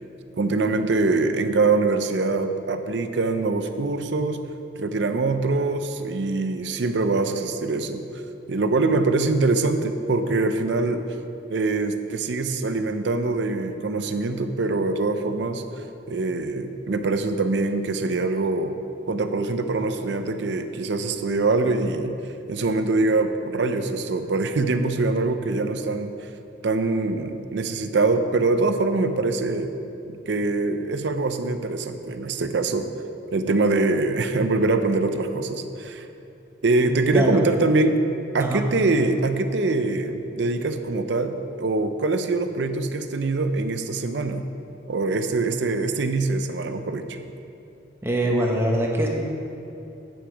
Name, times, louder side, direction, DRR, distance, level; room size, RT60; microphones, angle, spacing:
voice 1, 0.4-4.4 4.8-8.0 8.5-11.0 11.5-15.6 16.1-18.8 19.1-22.2 22.5-26.1 26.6-29.7 30.3-32.9 33.3-36.0 36.6-38.0 38.3-44.4 44.9-47.2, right 3 dB, 65° right, 8 dB, 0.6 m, -23 dB
voice 2, 36.8-37.4 38.4-38.6 48.0-49.1, right 1 dB, 15° right, -1 dB, 1.0 m, -23 dB
8.9 x 7.4 x 5.1 m, 2.8 s
head